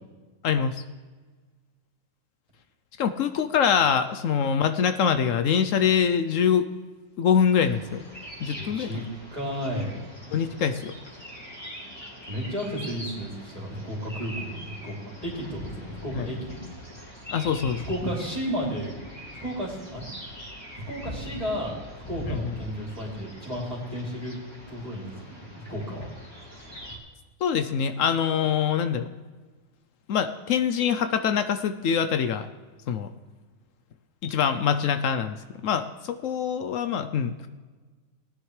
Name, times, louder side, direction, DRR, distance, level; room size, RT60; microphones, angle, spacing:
voice 1, 0.4-0.8 3.0-6.7 7.2-8.0 8.4-9.0 10.3-10.9 16.2-16.3 17.3-17.8 22.3-22.5 27.4-29.1 30.1-32.5 32.9-33.1 34.2-37.5, left 7 dB, 75° left, 9 dB, 1.0 m, -24 dB
sound 1, 7.6-27.0, equal, 20° left, 2.5 m, -41 dB
voice 2, 8.6-9.0 9.3-9.9 10.3-10.5 12.3-15.0 15.2-16.6 17.9-18.9 19.4-20.1 20.9-21.7 22.1-24.3 24.7-26.1, equal, 25° right, -6 dB, 3.1 m, -33 dB
19.0 x 10.0 x 3.2 m, 1.4 s
omnidirectional pair, 1.4 m